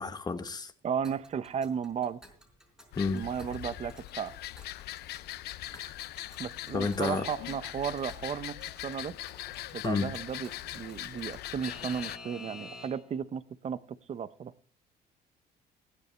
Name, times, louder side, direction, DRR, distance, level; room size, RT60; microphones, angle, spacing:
voice 1, 0.0-0.7 3.0-3.2 5.7-5.8 6.7-7.3 9.8-10.1, left 4 dB, 25° left, 1.4 m, -30 dB
voice 2, 0.8-2.2 3.1-4.3 6.4-9.2 9.7-14.5, right 7 dB, 40° right, 0.8 m, -35 dB
Alarm / Clock, 1.0-13.2, left 2 dB, 5° right, 4.5 m, -52 dB
sound 1, 2.9-12.2, left 15 dB, 75° left, 0.7 m, -41 dB
16.0 x 10.5 x 4.4 m
cardioid pair, 110°, 17 cm